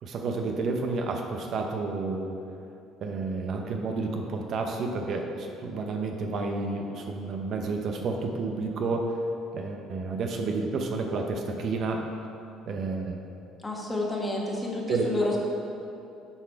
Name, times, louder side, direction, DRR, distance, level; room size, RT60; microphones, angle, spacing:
voice 1, 0.0-2.3 3.0-9.1 9.5-12.0 12.7-13.2 14.9-15.4, right 3 dB, 55° right, 3 dB, 0.6 m, -30 dB
voice 2, 13.6-15.4, left 2 dB, 15° left, -2 dB, 1.4 m, -30 dB
7.9 x 4.0 x 4.6 m, 2.7 s
supercardioid pair, 95°, 0 cm